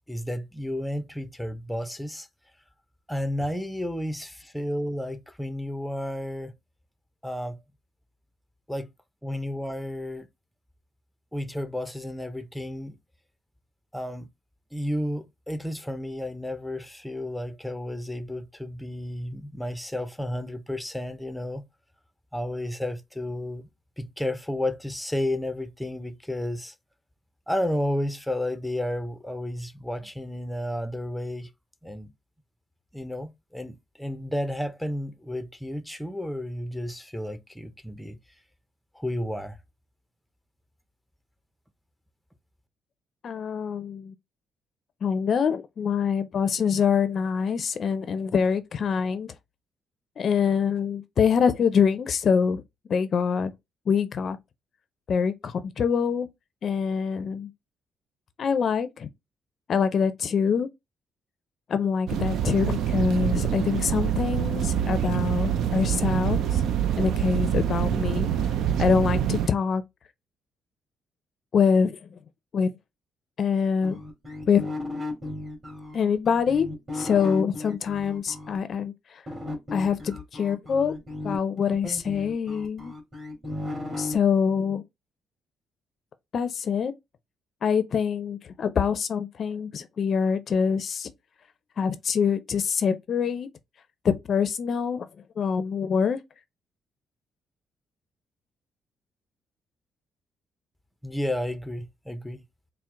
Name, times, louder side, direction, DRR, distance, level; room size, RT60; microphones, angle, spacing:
voice 1, 0.1-2.3 3.1-6.5 7.2-7.6 8.7-8.9 9.2-10.3 11.3-13.0 13.9-14.3 14.7-21.6 22.3-23.7 24.0-26.7 27.5-31.5 31.8-32.1 32.9-38.2 38.9-39.6 101.0-102.4, left 1 dB, ahead, 0.5 m, -32 dB
voice 2, 43.2-44.1 45.0-49.3 50.2-52.6 52.9-53.5 53.9-54.4 55.1-56.3 56.6-57.5 58.4-59.1 59.7-60.7 61.7-66.6 67.0-68.3 68.8-69.8 71.5-72.1 72.5-72.7 73.4-74.0 74.5-74.6 75.9-76.7 76.9-79.2 79.7-80.9 81.2-82.9 84.0-84.8 86.3-86.9 87.6-91.1 91.8-93.5 94.0-95.1 95.4-96.2, left 6 dB, 55° left, 0.5 m, -25 dB
sound 1, 62.1-69.5, right 9 dB, 75° right, 0.4 m, -26 dB
sound 2, 73.8-78.6 79.3-84.1, left 2 dB, 30° right, 1.8 m, -35 dB
4.3 x 2.0 x 3.6 m
cardioid pair, 90°, 0 cm